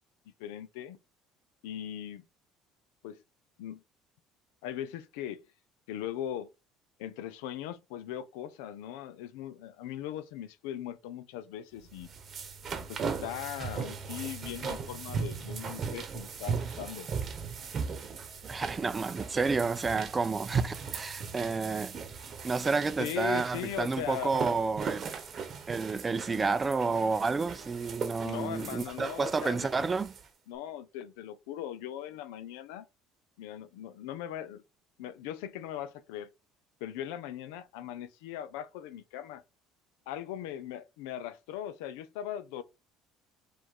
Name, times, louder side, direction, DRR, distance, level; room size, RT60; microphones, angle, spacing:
voice 1, 0.4-1.0 1.6-2.2 3.0-3.2 3.6-3.8 4.6-5.4 5.9-6.5 7.0-12.1 12.9-17.1 18.5-18.8 23.0-24.3 28.2-29.7 30.5-32.9 33.4-34.6 35.0-36.3 36.8-39.4 40.1-42.6, left 11 dB, 85° left, 0.5 m, -39 dB
sound 1, 11.9-30.3, right 5 dB, 45° right, 0.9 m, -38 dB
voice 2, 18.5-22.0 22.4-25.1 25.7-30.1, right 4 dB, 25° right, 0.4 m, -30 dB
5.0 x 2.5 x 3.6 m
supercardioid pair, 90°, 0 cm